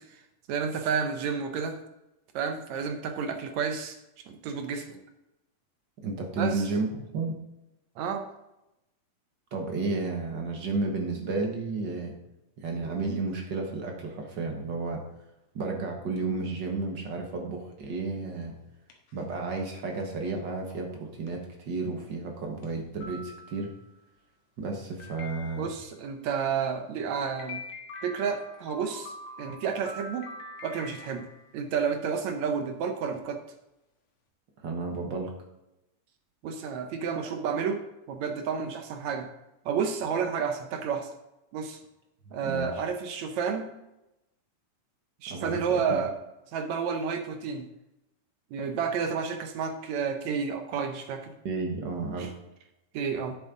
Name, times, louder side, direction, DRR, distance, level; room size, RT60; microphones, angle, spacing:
voice 1, 0.5-1.8 2.3-4.0 4.3-5.0 6.4-6.6 8.0-8.3 25.6-27.6 28.0-29.1 29.4-30.3 30.6-31.3 31.5-33.4 36.4-37.8 38.1-39.3 39.7-41.1 41.5-41.8 42.3-43.7 45.2-46.1 46.5-47.7 48.5-51.3 52.2-52.3 52.9-53.4, right 6 dB, 70° right, 6 dB, 2.0 m, -30 dB
voice 2, 6.0-7.4 9.5-12.1 12.6-15.0 15.5-18.6 19.1-23.7 24.6-25.7 34.6-35.3 42.4-42.8 45.3-46.0 51.4-52.4, right 3 dB, 50° right, 2 dB, 1.4 m, -32 dB
sound 1, 18.7-19.3 20.0-20.1 20.7-20.8 21.3-21.4 22.0-22.1 22.6-22.7 23.0-23.8 25.0-25.9 27.4-31.6, left 2 dB, 75° left, 2.8 m, -44 dB
10.5 x 8.4 x 3.8 m, 0.91 s
omnidirectional pair, 3.6 m